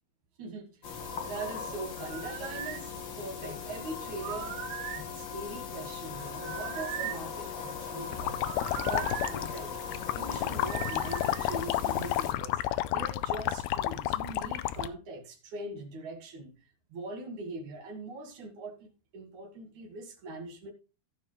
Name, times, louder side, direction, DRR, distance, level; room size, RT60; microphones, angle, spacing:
voice 1, 0.4-1.0 1.3-4.6 4.9-8.4 8.8-9.8 10.1-12.6 12.9-16.5 16.9-20.7, right 2 dB, 55° right, 2.7 m, -41 dB
sound 1, 0.8-12.3, left 6 dB, 65° left, 1.1 m, -39 dB
sound 2, 2.0-2.8 4.2-5.1 6.4-7.3 8.4-9.4 10.7-11.6, right 14 dB, 85° right, 2.0 m, -39 dB
sound 3, 8.1-14.9, left 14 dB, 80° left, 2.4 m, -31 dB
16.5 x 5.5 x 3.1 m
omnidirectional pair, 4.6 m